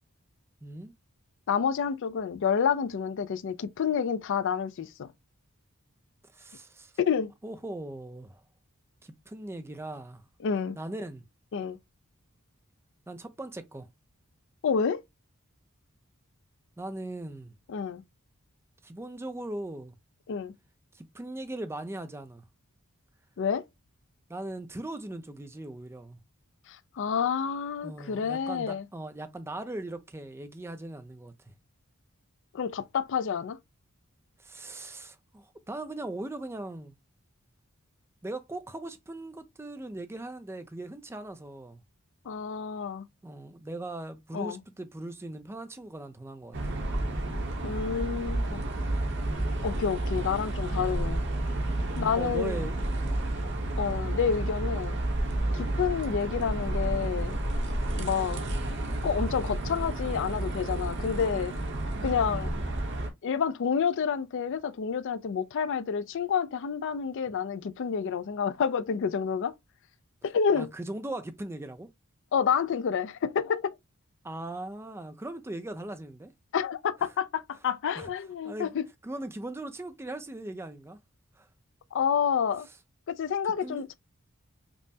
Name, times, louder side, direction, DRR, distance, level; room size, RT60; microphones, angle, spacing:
voice 1, 0.6-0.9 6.3-6.9 7.4-8.4 9.0-10.2 10.8-11.2 13.1-13.9 16.8-17.5 18.8-19.9 20.9-22.4 24.3-26.2 27.8-31.5 34.4-36.9 38.2-41.8 43.2-46.8 51.9-53.2 55.5-55.8 58.0-58.3 62.3-62.6 70.5-71.9 74.2-76.3 77.9-78.1 78.4-78.7 79.0-81.0 81.4-81.5 83.6-83.9, right 1 dB, 10° right, 0.4 m, -39 dB
voice 2, 1.5-5.1 7.0-7.3 10.4-10.8 11.5-11.8 14.6-15.0 17.7-18.0 20.3-20.5 23.4-23.6 26.7-28.8 32.5-33.6 42.3-43.1 44.3-44.6 47.6-48.6 49.6-51.2 52.0-52.6 53.8-55.0 55.5-57.4 57.9-58.4 59.0-61.5 62.0-62.6 63.2-69.5 70.2-70.7 72.3-73.8 76.5-78.8 81.9-82.7 83.1-83.9, left 6 dB, 60° left, 0.4 m, -29 dB
sound 1, 46.5-63.1, right 1 dB, 55° right, 0.9 m, -31 dB
5.2 x 2.1 x 2.7 m
head